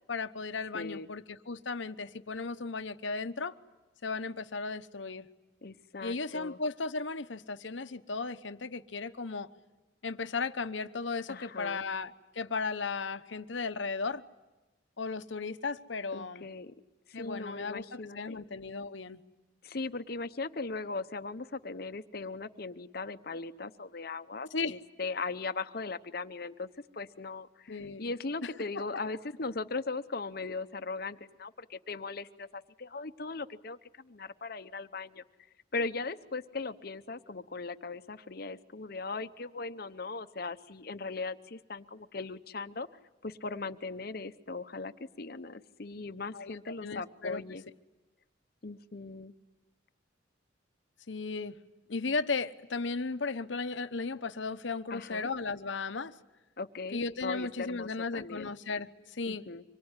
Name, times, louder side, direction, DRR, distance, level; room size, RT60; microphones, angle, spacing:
voice 1, 0.1-3.5 4.0-5.3 6.0-9.5 10.0-14.2 15.0-16.5 17.1-19.2 24.5-24.8 27.7-28.0 28.9-29.0 46.3-46.5 46.8-47.4 51.1-51.6 51.9-56.1 56.9-59.4, left 4 dB, 75° left, 1.0 m, -35 dB
voice 2, 0.7-1.1 5.6-6.6 11.3-11.8 16.1-16.7 17.1-18.4 19.6-26.7 26.9-35.2 35.7-42.9 43.2-47.6 48.6-49.3 54.9-55.3 56.6-58.5 59.2-59.6, left 3 dB, 50° left, 0.9 m, -39 dB
25.5 x 23.5 x 9.8 m
head